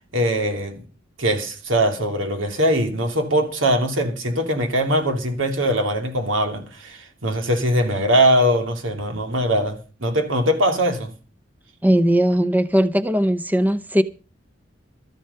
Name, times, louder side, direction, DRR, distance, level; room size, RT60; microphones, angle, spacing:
voice 1, 0.1-0.8 1.2-11.1, equal, 85° right, 2.7 m, -21 dB
voice 2, 11.8-14.0, equal, 10° right, 0.7 m, -18 dB
13.5 x 11.0 x 5.6 m
head